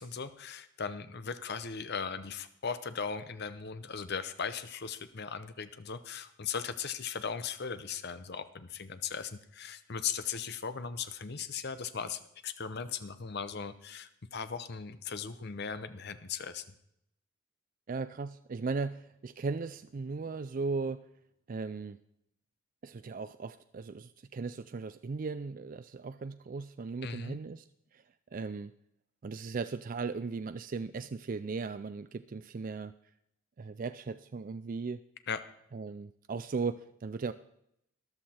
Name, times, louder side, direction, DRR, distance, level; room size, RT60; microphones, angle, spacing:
voice 1, 0.0-16.6 27.0-27.4 35.3-35.4, left 6 dB, 50° left, 11 dB, 0.8 m, -38 dB
voice 2, 17.9-21.0 21.5-22.0 22.8-27.6 27.9-28.0 28.3-28.7 29.2-32.9 33.6-35.0 35.7-37.3, right 4 dB, 40° right, 12 dB, 0.3 m, -37 dB
13.5 x 11.5 x 4.3 m, 0.75 s
head